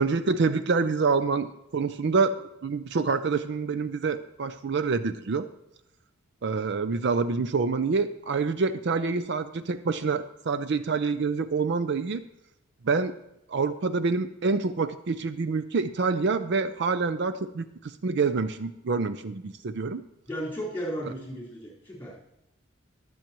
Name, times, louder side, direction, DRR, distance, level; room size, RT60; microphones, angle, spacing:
voice 1, 0.0-5.5 6.4-12.2 12.8-13.1 13.5-20.0, right 4 dB, 55° right, 11 dB, 0.5 m, -27 dB
voice 2, 20.3-22.2, equal, 10° left, -5 dB, 4.3 m, -35 dB
22.0 x 7.8 x 3.0 m, 0.88 s
head